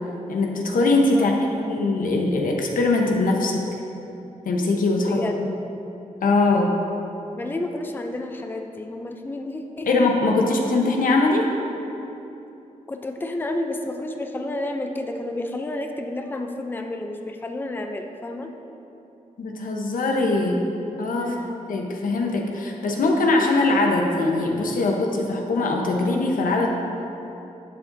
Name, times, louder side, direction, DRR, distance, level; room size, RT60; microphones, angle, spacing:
voice 1, 0.3-1.4 1.7-3.6 4.5-5.2 6.2-6.7 9.9-11.4 19.4-20.6 21.0-21.3 21.7-26.7, left 2 dB, 85° left, 1 dB, 0.9 m, -21 dB
voice 2, 1.1-1.5 5.1-5.3 7.3-9.9 12.9-18.5 21.2-21.6, left 2 dB, 15° left, 4 dB, 0.5 m, -30 dB
11.0 x 7.3 x 2.6 m, 2.9 s
wide cardioid pair, 120°, 14 cm